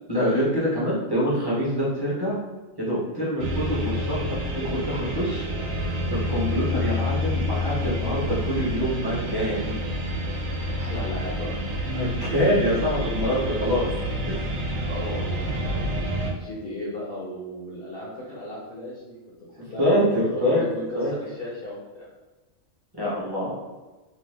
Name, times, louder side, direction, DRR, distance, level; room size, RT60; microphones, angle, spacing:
voice 1, 0.1-2.4 2.8-4.2 4.6-5.5 6.1-9.8 11.9-13.8 14.3-14.7 19.6-20.6 20.9-21.1 22.9-23.6, equal, 20° right, -7 dB, 0.7 m, -25 dB
sound 1, 3.4-16.3, equal, 80° right, 1.0 m, -28 dB
voice 2, 10.8-11.5 11.8-12.3 14.9-15.9 16.3-22.1, left 1 dB, 55° left, -6 dB, 0.7 m, -36 dB
2.7 x 2.2 x 3.2 m, 1.2 s
omnidirectional pair, 1.4 m